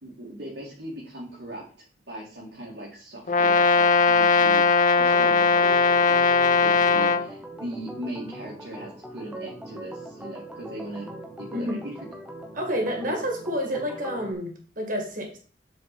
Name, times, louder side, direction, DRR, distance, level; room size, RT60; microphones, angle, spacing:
voice 1, 0.0-1.6 2.1-11.1 11.4-11.9, right 1 dB, 75° right, -5 dB, 2.1 m, -39 dB
Brass instrument, 3.3-7.3, left 4 dB, 45° left, 0.6 m, -19 dB
Organ, 5.0-14.3, equal, 5° right, 1.1 m, -41 dB
voice 2, 12.5-15.4, equal, 50° right, 3 dB, 2.0 m, -29 dB
7.9 x 4.7 x 4.2 m, 0.40 s
head